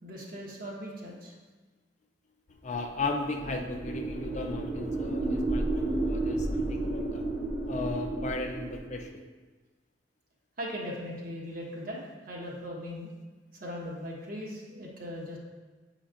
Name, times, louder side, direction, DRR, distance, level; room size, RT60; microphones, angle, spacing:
voice 1, 0.0-1.3 10.6-12.0 12.3-13.1 13.6-15.4, equal, 50° right, -3 dB, 1.3 m, -39 dB
voice 2, 2.6-7.2 7.7-9.2, left 3 dB, 40° left, 3 dB, 0.5 m, -36 dB
sound 1, 3.0-9.1, right 2 dB, 15° right, 0.6 m, -32 dB
8.2 x 5.1 x 2.5 m, 1.3 s
head